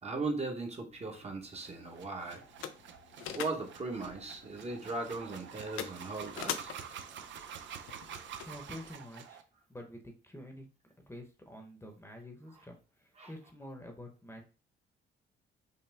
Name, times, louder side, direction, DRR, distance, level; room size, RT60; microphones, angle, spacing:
voice 1, 0.0-2.4 3.3-6.7 13.2-13.3, right 3 dB, 30° right, 2 dB, 1.1 m, -38 dB
sound 1, 0.9-8.9, left 9 dB, 85° left, 0.5 m, -45 dB
sound 2, 1.5-9.4, right 8 dB, 70° right, 0.6 m, -48 dB
voice 2, 8.4-9.4 9.7-10.7 11.1-14.4, left 1 dB, 10° left, 3 dB, 0.9 m, -48 dB
5.7 x 2.1 x 3.4 m, 0.35 s
cardioid pair, 90°, 20 cm